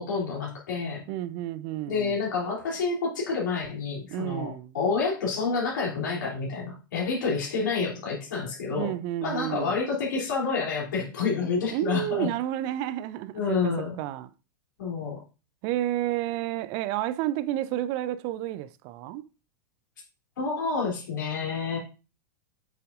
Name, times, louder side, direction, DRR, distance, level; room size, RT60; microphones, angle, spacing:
voice 1, 0.0-1.0 1.9-12.3 13.3-14.0 14.8-15.2 20.4-21.8, left 4 dB, 65° left, 3.1 m, -29 dB
voice 2, 1.1-2.1 4.1-4.7 8.7-9.8 11.7-14.3 15.6-19.2, right 13 dB, 40° right, 0.5 m, -31 dB
8.4 x 6.7 x 2.5 m
figure-of-eight pair, 90°, 11 cm